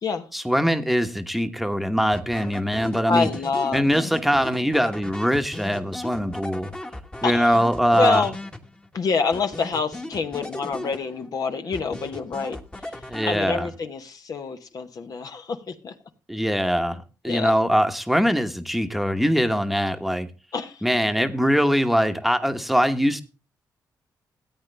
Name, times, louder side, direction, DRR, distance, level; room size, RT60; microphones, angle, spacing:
voice 1, 0.3-3.3 3.7-6.7 7.2-8.2 13.1-13.7 16.3-20.3 20.8-23.2, equal, ahead, 1.2 m, -22 dB
sound 1, 2.1-9.0 9.3-11.4 11.7-13.8, left 1 dB, 15° left, 1.4 m, -37 dB
voice 2, 3.1-3.9 4.4-4.7 7.2-7.6 7.9-8.3 8.9-15.9 17.2-17.5 20.5-20.8, left 4 dB, 60° left, 1.2 m, -27 dB
14.0 x 8.9 x 3.4 m
cardioid pair, 75°, 7 cm